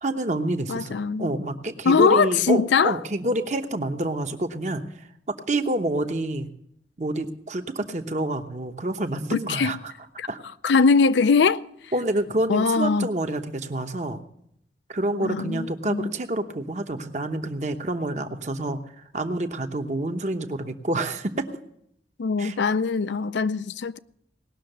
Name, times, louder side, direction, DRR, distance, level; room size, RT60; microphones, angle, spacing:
voice 1, 0.0-4.8 5.3-6.5 7.0-9.8 10.3-10.4 11.9-14.2 14.9-21.5 22.4-22.6, right 1 dB, 40° right, 0.9 m, -28 dB
voice 2, 0.7-1.4 1.8-3.0 9.3-9.8 10.2-10.3 10.6-11.6 12.5-13.1 15.2-16.1 22.2-24.0, left 5 dB, 85° left, 0.5 m, -21 dB
18.5 x 6.4 x 7.8 m
head